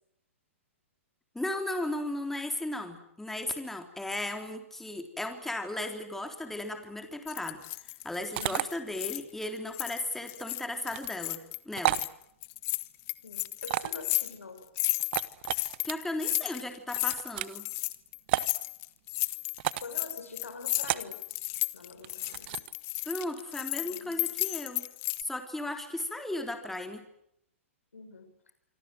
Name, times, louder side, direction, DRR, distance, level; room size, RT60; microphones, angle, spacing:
voice 1, 1.3-7.6 8.0-12.0 15.5-17.7 23.0-24.9 25.2-27.0, left 1 dB, 5° left, 6 dB, 3.6 m, -36 dB
sound 1, 7.3-9.4 9.7-12.1 12.4-25.2, left 23 dB, 35° left, 1.4 m, -33 dB
voice 2, 8.4-8.7 13.2-14.9 19.8-21.3 21.7-22.6 23.8-24.5 27.9-28.3, left 4 dB, 85° left, 9 dB, 6.2 m, -45 dB
sound 2, 8.4-8.7 10.9-11.1 11.8-12.1 13.6-14.1 15.0-15.9 16.9-17.6 18.3-18.5 19.6-19.9 20.8-21.1 22.0-22.7, right 17 dB, 50° right, 1.1 m, -32 dB
26.0 x 26.0 x 7.8 m, 0.76 s
hypercardioid pair, 120°, 7 cm